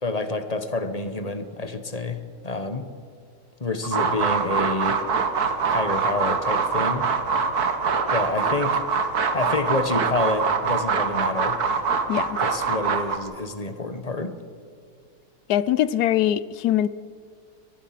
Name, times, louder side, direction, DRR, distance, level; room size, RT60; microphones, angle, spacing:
voice 1, 0.0-2.9 3.6-5.0 5.6-7.1 8.1-8.8 9.3-11.6 12.4-14.4, left 2 dB, 25° left, 1.1 m, -28 dB
sound 1, 3.8-13.2, right 5 dB, 70° right, 2.0 m, -24 dB
voice 2, 15.5-16.9, left 11 dB, 80° left, 1.2 m, -22 dB
24.5 x 19.0 x 5.9 m
omnidirectional pair, 1.7 m